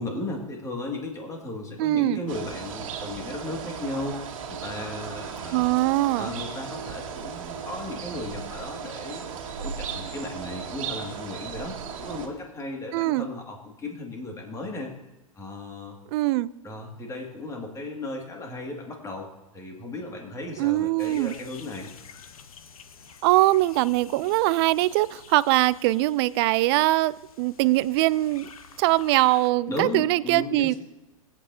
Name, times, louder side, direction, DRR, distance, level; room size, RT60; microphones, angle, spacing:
voice 1, 0.0-4.2 4.5-5.7 6.2-14.9 15.3-16.0 16.6-19.3 19.5-21.9 29.7-30.8, left 2 dB, 15° left, 1 dB, 2.1 m, -35 dB
voice 2, 1.8-2.2 5.5-6.3 12.9-13.3 16.1-16.5 20.6-21.3 23.2-28.5 28.8-30.7, right 18 dB, 50° right, 19 dB, 0.4 m, -22 dB
sound 1, 2.3-12.3, right 6 dB, 65° right, 1.8 m, -36 dB
sound 2, 21.0-29.5, left 6 dB, 85° left, 1.0 m, -49 dB
21.0 x 8.7 x 2.7 m, 1.0 s
hypercardioid pair, 120°, 18 cm